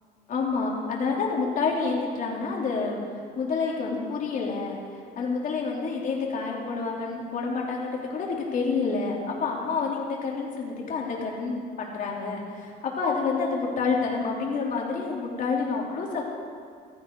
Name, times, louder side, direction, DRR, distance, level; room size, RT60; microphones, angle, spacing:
voice 1, 0.3-3.0 3.4-4.8 5.2-16.3, left 4 dB, 50° left, -2 dB, 3.6 m, -28 dB
15.5 x 14.5 x 4.8 m, 2.1 s
cardioid pair, 110°, 17 cm